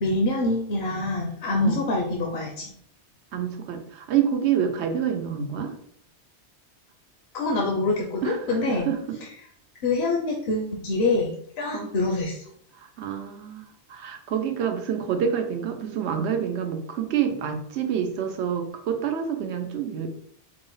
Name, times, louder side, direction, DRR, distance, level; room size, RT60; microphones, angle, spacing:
voice 1, 0.0-2.7 7.3-8.9 9.8-12.4, left 2 dB, 70° left, 0 dB, 0.9 m, -25 dB
voice 2, 3.3-5.7 8.2-9.2 11.7-11.9 12.7-20.1, right 8 dB, 90° right, 5 dB, 0.9 m, -27 dB
4.7 x 2.1 x 3.8 m, 0.65 s
omnidirectional pair, 1.1 m